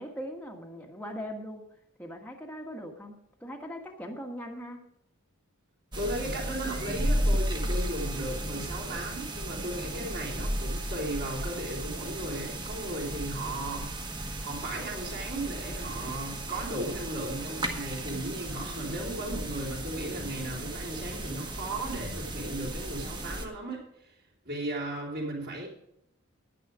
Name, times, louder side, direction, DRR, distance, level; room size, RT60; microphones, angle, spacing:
voice 1, 0.0-1.7 2.0-4.8, equal, 5° left, 1 dB, 1.4 m, -40 dB
sound 1, 5.9-23.5, right 1 dB, 20° right, 1.5 m, -34 dB
voice 2, 6.0-24.2 24.5-25.7, right 1 dB, 45° right, -7 dB, 3.5 m, -36 dB
10.5 x 10.5 x 5.0 m, 0.79 s
head